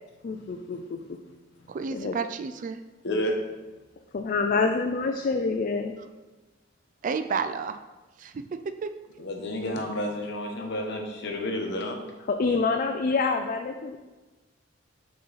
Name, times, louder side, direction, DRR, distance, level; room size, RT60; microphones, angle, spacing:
voice 1, 0.2-1.2 1.9-2.1 4.1-6.0 12.3-14.0, left 4 dB, 45° left, 5 dB, 0.3 m, -27 dB
voice 2, 1.7-2.8 7.0-7.8 8.2-8.9, right 5 dB, 40° right, 10 dB, 0.3 m, -31 dB
voice 3, 3.0-3.3 9.2-12.0, left 1 dB, 60° left, 2 dB, 0.9 m, -30 dB
6.7 x 3.9 x 4.0 m, 1.2 s
head